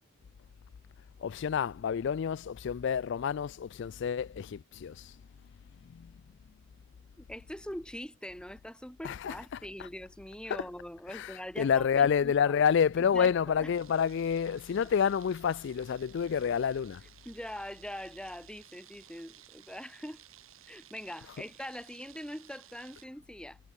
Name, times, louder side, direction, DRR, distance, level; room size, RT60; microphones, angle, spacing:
voice 1, 1.2-5.1 5.8-6.1 9.0-9.4 10.5-10.6 11.1-17.0, left 7 dB, 55° left, 0.3 m, -29 dB
voice 2, 7.2-12.6 13.0-13.7 17.3-20.2 20.7-23.6, equal, 5° left, 2.4 m, -43 dB
sound 1, 13.7-23.1, right 12 dB, 70° right, 2.5 m, -57 dB
head